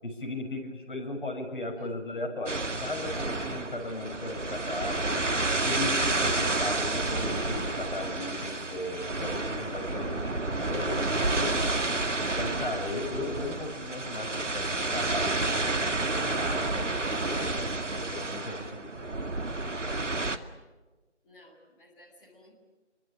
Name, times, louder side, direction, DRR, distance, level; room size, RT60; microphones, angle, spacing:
voice 1, 0.0-5.2 5.6-11.7 12.2-15.4 15.6-19.0, left 2 dB, 45° left, 0 dB, 6.8 m, -37 dB
voice 2, 1.7-2.2 18.3-18.8 21.2-22.5, left 1 dB, 5° left, -8 dB, 2.4 m, -56 dB
sound 1, 2.5-20.4, right 2 dB, 80° right, 2.2 m, -30 dB
27.0 x 23.5 x 8.5 m, 1.2 s
figure-of-eight pair, 170°, 36 cm